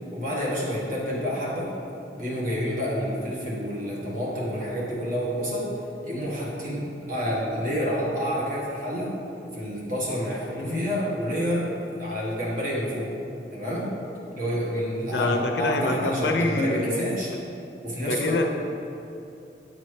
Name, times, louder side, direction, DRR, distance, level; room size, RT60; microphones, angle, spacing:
voice 1, 0.1-1.7 2.1-5.7 6.0-9.1 9.5-11.7 12.0-13.1 13.5-13.9 14.3-17.3 17.8-18.4, equal, 50° right, -6 dB, 1.5 m, -28 dB
voice 2, 10.5-10.9 15.0-17.4 18.0-18.4, left 2 dB, 70° left, 4 dB, 0.5 m, -26 dB
8.4 x 4.2 x 3.2 m, 2.7 s
head